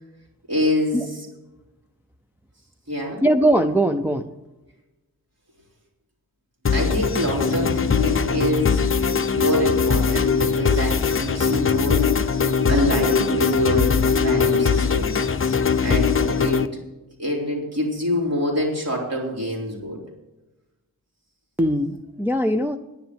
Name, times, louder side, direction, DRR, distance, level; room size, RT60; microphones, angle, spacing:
voice 1, 0.5-1.3 2.9-3.2 6.7-8.8 9.4-12.4 12.7-15.2 15.8-16.6 17.2-20.0, equal, 45° right, -2 dB, 3.9 m, -25 dB
voice 2, 3.2-4.3 21.6-22.8, right 1 dB, 5° right, 3 dB, 0.5 m, -20 dB
sound 1, 6.7-16.7, left 5 dB, 35° left, 0.7 m, -21 dB
10.5 x 10.5 x 7.0 m, 1.0 s
wide cardioid pair, 155°, 35 cm